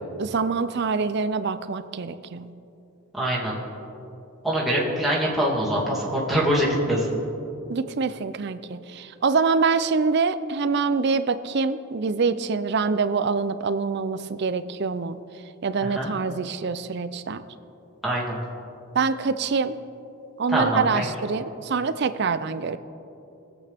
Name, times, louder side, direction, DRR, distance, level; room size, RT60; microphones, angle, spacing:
voice 1, 0.2-2.5 7.7-15.2 15.6-17.4 18.9-19.7 20.4-22.8, right 4 dB, 50° right, 12 dB, 0.4 m, -25 dB
voice 2, 3.1-3.6 4.4-7.2 15.8-16.1 18.0-18.4 20.5-21.0, right 1 dB, ahead, -7 dB, 2.2 m, -24 dB
21.0 x 8.3 x 3.5 m, 2.8 s
head